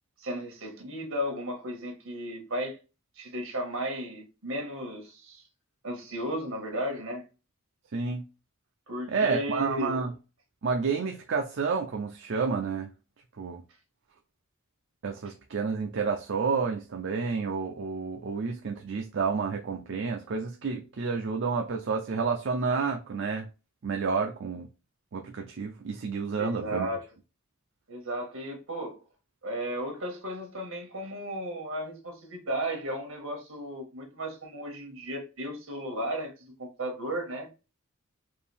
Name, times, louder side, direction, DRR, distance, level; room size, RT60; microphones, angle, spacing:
voice 1, 0.2-2.8 3.2-5.4 5.8-7.2 8.9-10.0 26.4-27.0 27.9-29.0 29.4-37.5, equal, 75° right, 1.6 m, -35 dB
voice 2, 7.9-8.2 9.1-10.1 10.6-12.9 13.4-13.6 15.0-23.5 23.8-24.7 25.1-26.9, right 5 dB, 60° right, 0.5 m, -30 dB
4.6 x 2.7 x 3.4 m
head